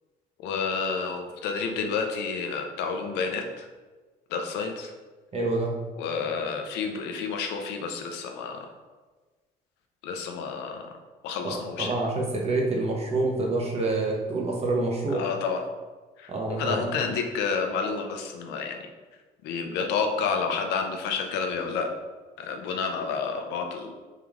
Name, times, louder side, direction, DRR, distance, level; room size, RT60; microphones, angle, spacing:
voice 1, 0.4-3.7 4.3-4.9 5.9-8.7 10.0-10.9 11.2-11.9 15.1-15.6 16.2-16.3 16.6-18.8 19.4-21.9 22.4-24.0, left 5 dB, 90° left, 4 dB, 0.6 m, -30 dB
voice 2, 5.3-5.7 11.4-15.2 16.3-17.0, right 2 dB, 35° right, -1 dB, 1.0 m, -27 dB
3.7 x 3.2 x 3.5 m, 1.3 s
cardioid pair, 110°, 17 cm